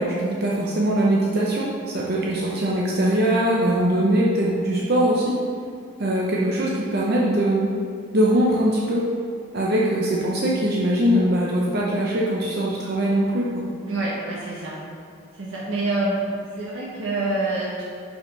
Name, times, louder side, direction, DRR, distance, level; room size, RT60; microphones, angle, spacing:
voice 1, 0.0-5.3 6.0-7.7 8.1-9.1 9.5-13.7, right 1 dB, 45° right, -4 dB, 0.7 m, -21 dB
voice 2, 13.8-14.8 15.4-16.2 16.6-17.8, right 2 dB, 70° right, -6 dB, 1.0 m, -26 dB
5.8 x 5.0 x 5.2 m, 2.2 s
head